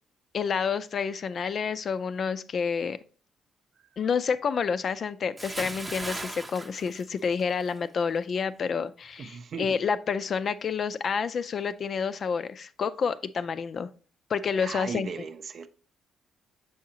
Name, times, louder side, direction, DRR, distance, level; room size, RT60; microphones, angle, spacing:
voice 1, 0.3-3.0 4.0-13.9 14.3-15.1, left 6 dB, 50° left, 0.4 m, -29 dB
Bathtub (filling or washing) / Splash splatter, 5.4-7.8 8.1-8.4, right 2 dB, 20° right, 0.7 m, -38 dB
voice 2, 9.2-9.8 14.6-15.7, right 6 dB, 55° right, 0.5 m, -37 dB
7.0 x 4.8 x 2.8 m
cardioid pair, 90°, 0 cm